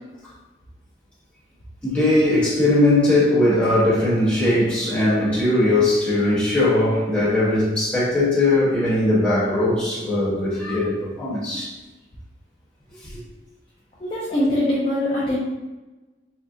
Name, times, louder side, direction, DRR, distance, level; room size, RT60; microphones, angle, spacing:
voice 1, 1.8-11.7 13.0-13.2, left 1 dB, 5° left, -11 dB, 1.1 m, -19 dB
voice 2, 14.0-15.4, left 1 dB, 25° left, -8 dB, 0.4 m, -22 dB
3.5 x 2.2 x 2.7 m, 1.1 s
head